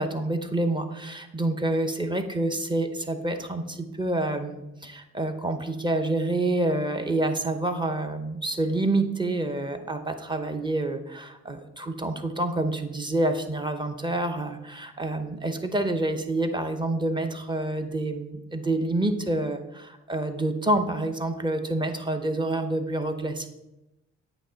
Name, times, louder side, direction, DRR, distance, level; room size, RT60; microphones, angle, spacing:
voice 1, 0.0-23.5, right 2 dB, 15° right, 6 dB, 0.7 m, -28 dB
8.5 x 2.9 x 5.0 m, 0.93 s
cardioid pair, 90°, 30 cm